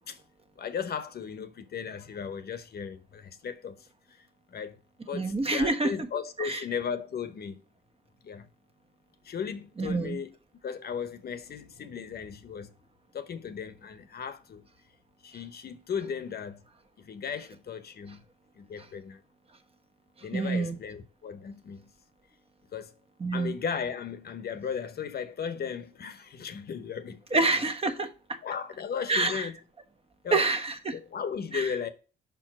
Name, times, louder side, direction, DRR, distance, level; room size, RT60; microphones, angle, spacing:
voice 1, 0.6-3.8 4.2-4.8 5.1-7.6 8.2-8.5 9.2-10.4 10.6-12.7 13.1-14.7 15.2-16.6 17.0-18.2 18.5-19.2 20.2-21.9 22.7-22.9 23.3-27.6 28.4-29.6 30.2-30.5 30.9-31.9, left 7 dB, 55° left, 1.0 m, -36 dB
voice 2, 5.1-5.9 6.4-6.6 9.8-10.2 20.3-20.8 23.2-23.5 27.3-28.4 29.1-29.5 30.3-30.9 31.5-31.7, right 3 dB, 30° right, 1.1 m, -27 dB
5.4 x 4.7 x 6.0 m
cardioid pair, 90°, 20 cm